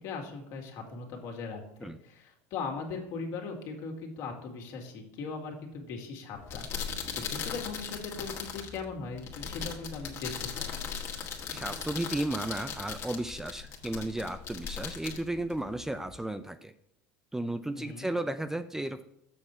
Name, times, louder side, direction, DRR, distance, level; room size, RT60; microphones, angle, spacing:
voice 1, 0.0-10.7 17.7-18.1, left 4 dB, 60° left, 1 dB, 2.2 m, -39 dB
sound 1, 6.3-16.2, left 7 dB, 45° left, 1.7 m, -39 dB
voice 2, 11.5-16.7 17.3-19.0, right 1 dB, 5° right, 10 dB, 0.4 m, -34 dB
7.3 x 6.4 x 4.4 m, 0.79 s
supercardioid pair, 115°, 7 cm